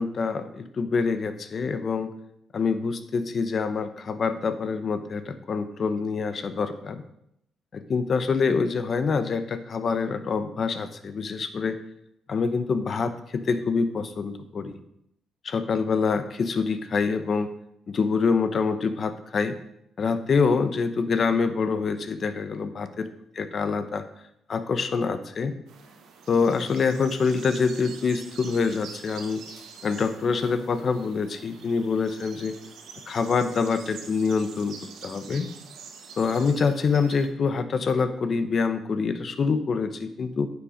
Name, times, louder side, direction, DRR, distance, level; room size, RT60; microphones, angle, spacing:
voice 1, 0.0-2.1 2.5-7.0 7.7-11.8 12.3-14.7 15.4-17.5 17.9-19.6 20.0-23.1 23.4-24.0 24.5-25.5 26.3-29.4 29.8-32.6 33.1-34.7 35.0-35.5 36.2-40.5, left 5 dB, 50° left, 10 dB, 0.9 m, -25 dB
sound 1, 25.7-37.3, right 5 dB, 85° right, 1.3 m, -46 dB
9.5 x 5.8 x 5.1 m, 0.77 s
cardioid pair, 90°, 0 cm